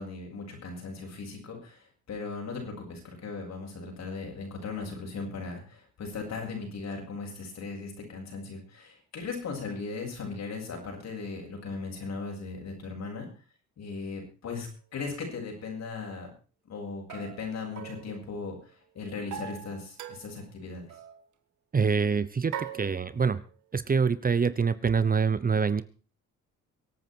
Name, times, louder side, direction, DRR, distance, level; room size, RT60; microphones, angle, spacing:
voice 1, 0.0-13.3 13.8-16.3 16.6-20.9, left 4 dB, 60° left, 1 dB, 7.6 m, -38 dB
sound 1, 14.7-14.8 17.1-18.7 19.3-20.5 20.9-21.2 22.5-23.5, right 10 dB, 80° right, 1.7 m, -42 dB
voice 2, 21.7-23.4 23.7-25.8, right 5 dB, 30° right, 15 dB, 0.9 m, -25 dB
24.0 x 8.9 x 4.7 m, 0.36 s
cardioid pair, 90°, 30 cm